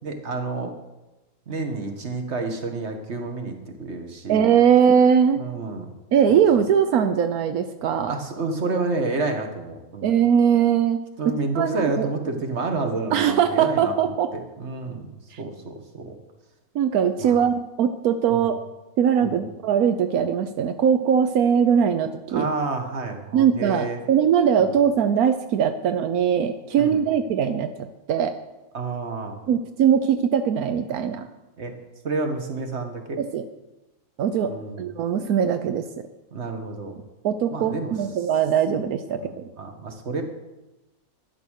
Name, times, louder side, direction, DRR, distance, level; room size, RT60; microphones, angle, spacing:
voice 1, 0.0-0.7 1.5-4.5 5.4-5.9 6.3-6.4 8.1-10.1 11.2-13.9 14.6-16.2 17.2-17.4 18.3-18.5 19.2-19.4 22.3-24.0 24.6-24.8 26.8-27.0 28.7-29.4 31.6-31.7 32.0-33.2 34.5-34.9 36.3-37.0 37.5-37.9 39.1-40.2, right 3 dB, 50° right, 5 dB, 1.9 m, -29 dB
voice 2, 4.3-5.4 6.1-8.1 10.0-11.0 11.5-12.1 13.1-14.3 15.3-15.4 16.7-18.5 19.0-22.5 23.3-28.3 29.5-31.3 33.2-33.4 34.2-35.9 37.2-39.4, right 8 dB, 85° right, 8 dB, 1.2 m, -21 dB
12.5 x 10.5 x 6.5 m, 1.0 s
omnidirectional pair, 1.5 m